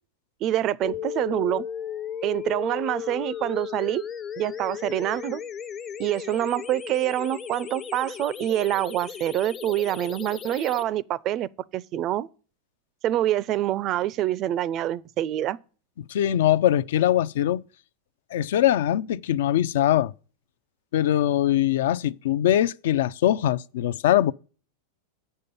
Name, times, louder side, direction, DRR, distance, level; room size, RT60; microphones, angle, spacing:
voice 1, 0.4-1.6 2.2-4.0 4.4-5.4 6.0-12.3 13.0-15.6, right 13 dB, 35° right, 0.3 m, -26 dB
sound 1, 0.8-10.8, left 8 dB, 25° left, 0.6 m, -35 dB
voice 2, 16.1-17.6 18.3-20.1 20.9-24.3, left 12 dB, 75° left, 0.4 m, -22 dB
7.9 x 5.4 x 6.8 m
supercardioid pair, 140°, 0 cm